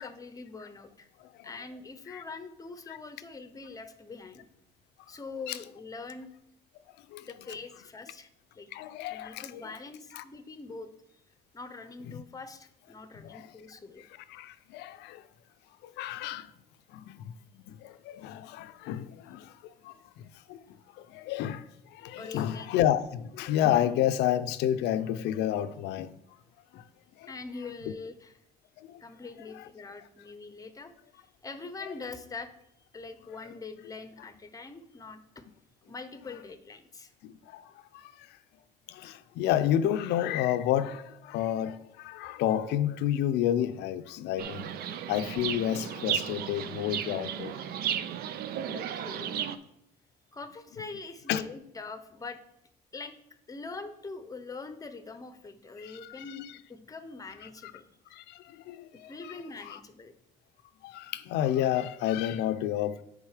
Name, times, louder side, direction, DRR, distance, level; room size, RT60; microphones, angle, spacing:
voice 1, 0.0-1.1 1.4-4.5 5.1-6.3 7.3-8.3 8.5-8.7 9.1-10.9 11.5-14.1 22.2-22.7 27.3-28.3 29.0-30.9 31.4-32.5 32.9-35.4 35.8-37.1 48.6-49.6 50.3-52.4 52.9-53.1 53.5-56.4 56.7-57.9 58.9-60.1, left 4 dB, 20° left, 0.7 m, -43 dB
voice 2, 7.0-7.5 8.7-9.7 10.1-10.2 12.0-12.2 13.2-13.5 14.0-15.3 15.8-16.5 16.9-26.2 26.7-26.8 27.2-27.3 27.9-28.0 28.8-29.0 29.5-29.7 37.2-38.4 38.9-47.5 51.3-51.4 55.8-56.6 57.6-57.7 58.1-59.8 60.8-63.0, left 11 dB, 85° left, 0.5 m, -31 dB
Chirp tweet, 44.4-49.6, right 9 dB, 65° right, 0.5 m, -34 dB
9.0 x 3.7 x 4.9 m
cardioid pair, 110°, 17 cm